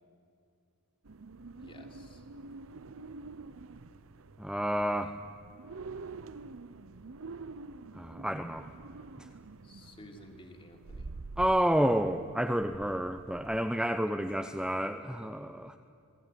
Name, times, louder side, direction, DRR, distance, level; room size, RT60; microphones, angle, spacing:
sound 1, 1.1-13.6, right 3 dB, 65° right, 0.8 m, -47 dB
voice 1, 1.5-2.2 9.6-11.1, left 1 dB, 25° left, 3 dB, 3.1 m, -53 dB
voice 2, 4.4-5.2 7.9-8.7 9.2-9.3 11.4-15.8, equal, 5° right, 6 dB, 0.8 m, -30 dB
28.0 x 19.0 x 9.4 m, 2.4 s
head